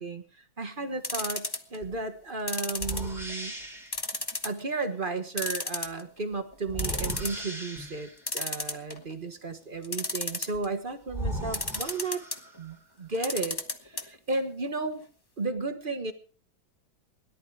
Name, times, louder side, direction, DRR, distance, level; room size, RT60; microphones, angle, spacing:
voice 1, 0.0-3.5 4.4-12.2 12.6-15.0 15.4-16.1, right 3 dB, 30° right, 8 dB, 1.2 m, -34 dB
sound 1, 1.0-1.8 2.5-3.4 3.9-4.6 4.9-5.0 5.4-6.2 6.5-6.6 6.8-7.4 8.3-9.1 9.8-10.7 11.5-12.4 13.1-14.0 14.3-14.4 14.7-14.8, left 2 dB, 20° left, 0.6 m, -32 dB
sound 2, 1.8-2.0 2.8-4.0 6.7-8.2 10.5-10.6 11.1-12.7, right 1 dB, ahead, 3.1 m, -37 dB
17.5 x 11.5 x 4.8 m, 0.39 s
omnidirectional pair, 2.1 m